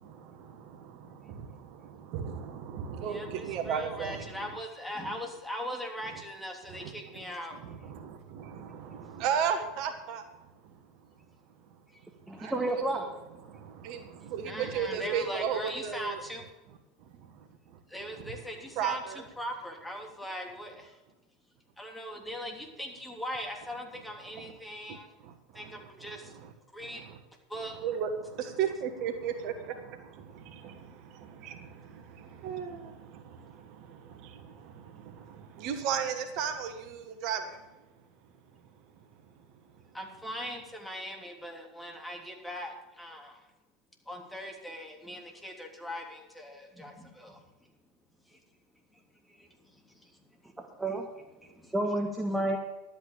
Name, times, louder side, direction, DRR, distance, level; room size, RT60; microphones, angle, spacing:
voice 1, 0.0-4.5 5.0-5.1 6.7-7.2 7.5-10.2 12.4-12.8 13.4-16.2 18.2-18.4 18.7-19.2 24.3-24.5 24.9-25.0 25.5-26.5 26.8-27.2 27.8-37.6, right 7 dB, 55° right, 8 dB, 1.4 m, -36 dB
voice 2, 3.1-7.6 12.4-12.5 14.5-16.4 17.9-19.0 19.4-21.0 21.8-25.1 25.5-26.3 26.7-27.0 27.5-27.8 39.9-43.4 44.1-47.4 48.3-48.4 49.3-50.1 50.4-50.5 51.4-51.7, equal, 5° left, 2 dB, 3.1 m, -40 dB
voice 3, 12.3-13.0 50.8-51.1 51.7-52.6, right 1 dB, 10° right, 2 dB, 1.8 m, -29 dB
12.0 x 8.9 x 6.9 m, 1.1 s
hypercardioid pair, 80°, 0 cm